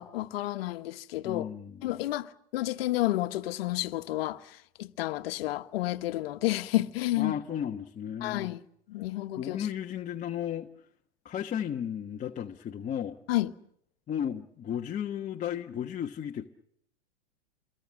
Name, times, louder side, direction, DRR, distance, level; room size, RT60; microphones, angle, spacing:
voice 1, 0.0-1.5 1.8-7.3 8.2-8.6 8.9-9.7 13.3-13.5, left 16 dB, 65° left, 1.4 m, -31 dB
voice 2, 1.2-1.8 7.2-8.5 9.4-10.7 11.2-13.2 14.1-16.4, left 9 dB, 25° left, 1.2 m, -34 dB
28.0 x 22.5 x 6.4 m
hypercardioid pair, 115°, 32 cm